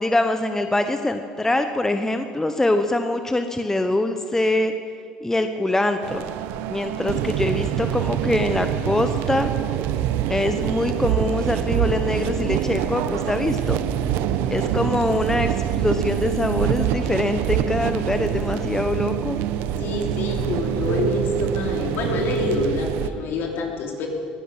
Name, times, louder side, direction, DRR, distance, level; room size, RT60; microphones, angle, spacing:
voice 1, 0.0-4.7 5.2-6.2 6.7-9.5 10.3-13.8 14.5-19.4, left 2 dB, 10° left, 7 dB, 1.0 m, -23 dB
sound 1, 6.0-23.1, right 10 dB, 75° right, 0.8 m, -25 dB
voice 2, 19.8-24.1, left 4 dB, 60° left, 1 dB, 3.2 m, -27 dB
20.5 x 11.0 x 6.2 m, 2.5 s
hypercardioid pair, 75°, 4 cm